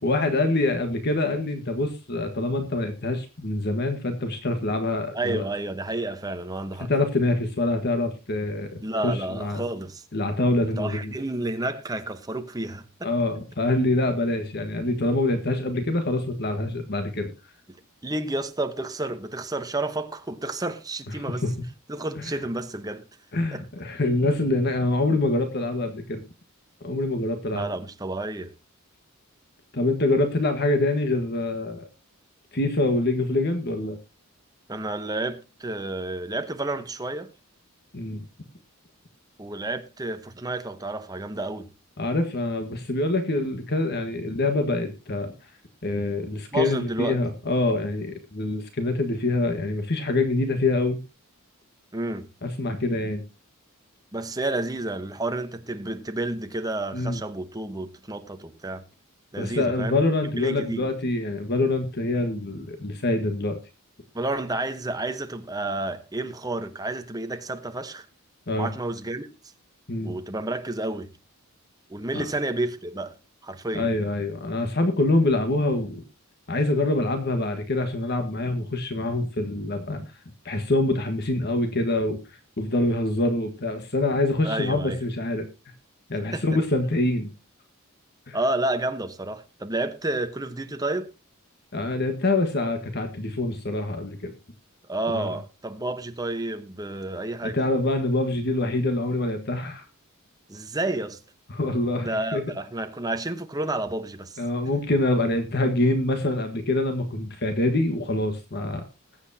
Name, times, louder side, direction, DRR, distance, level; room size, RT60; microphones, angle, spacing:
voice 1, 0.0-5.4 6.8-9.6 10.1-11.1 13.0-17.3 21.3-21.5 22.2-22.4 23.3-26.2 26.8-27.7 29.7-31.8 32.5-34.0 37.9-38.2 42.0-45.3 45.8-51.0 52.4-53.2 56.9-57.2 59.4-63.6 68.5-68.7 69.9-70.1 72.1-72.2 73.7-76.0 76.5-80.0 80.4-82.2 82.6-85.5 86.1-87.3 88.3-88.4 91.7-94.3 95.1-95.4 97.4-99.9 101.5-102.4 104.4-108.8, left 2 dB, 50° left, 1.5 m, -25 dB
voice 2, 5.1-6.9 8.8-10.0 10.6-13.1 18.0-21.4 21.9-23.0 23.5-23.6 27.5-28.5 34.7-37.3 39.4-41.7 46.5-47.2 51.9-52.3 54.1-58.8 59.3-60.0 60.4-60.9 64.1-68.0 68.6-69.3 70.0-71.1 71.9-73.2 73.4-73.9 84.4-85.0 86.3-86.4 88.3-91.1 94.9-97.6 100.5-101.2 102.0-104.4, right 2 dB, 15° right, 1.0 m, -30 dB
20.5 x 8.1 x 2.8 m
head